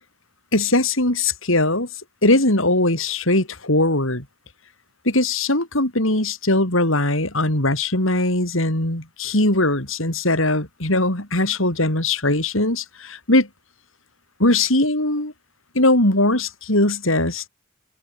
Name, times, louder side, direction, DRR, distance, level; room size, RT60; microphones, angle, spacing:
voice 1, 0.5-1.9 2.2-4.3 5.1-13.5 14.4-15.3 15.8-17.4, left 2 dB, 65° left, 7.0 m, -20 dB
head